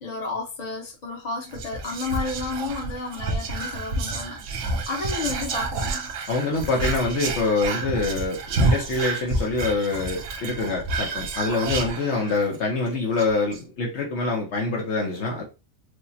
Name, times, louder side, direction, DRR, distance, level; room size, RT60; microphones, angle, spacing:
voice 1, 0.0-6.1, left 3 dB, 35° left, 1.1 m, -32 dB
Whispering, 1.5-12.6 12.9-13.0 13.2-13.6, right 3 dB, 75° right, 1.0 m, -29 dB
voice 2, 6.3-15.4, left 3 dB, 65° left, 1.1 m, -25 dB
4.8 x 2.1 x 2.7 m
omnidirectional pair, 1.3 m